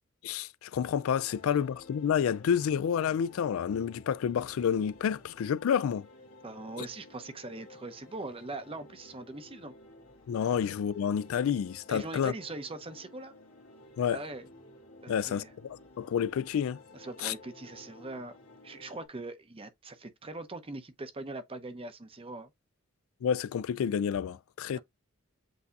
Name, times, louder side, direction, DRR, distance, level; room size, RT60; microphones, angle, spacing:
voice 1, 0.2-6.1 6.8-6.9 10.3-12.3 14.0-14.2 15.1-16.8 17.2-17.3 23.2-24.8, left 8 dB, 70° left, 0.3 m, -29 dB
sound 1, 0.8-19.1, left 2 dB, 85° left, 1.8 m, -54 dB
voice 2, 6.4-9.7 11.9-13.4 14.1-14.5 15.0-15.5 16.9-18.4 18.6-22.5 24.8-24.9, right 2 dB, 25° right, 0.6 m, -41 dB
8.0 x 2.7 x 2.4 m
head